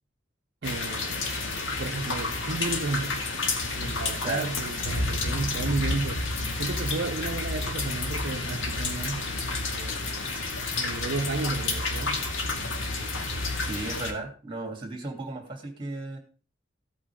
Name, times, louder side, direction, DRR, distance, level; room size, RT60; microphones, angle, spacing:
sound 1, 0.6-14.1, left 3 dB, 90° left, 2.2 m, -30 dB
voice 1, 0.6-3.2 3.7-6.3 6.6-9.3 9.7-10.3 10.8-12.3, right 3 dB, 65° right, 0.7 m, -33 dB
voice 2, 13.6-16.2, right 2 dB, 25° right, 2.9 m, -35 dB
14.5 x 8.7 x 3.6 m
head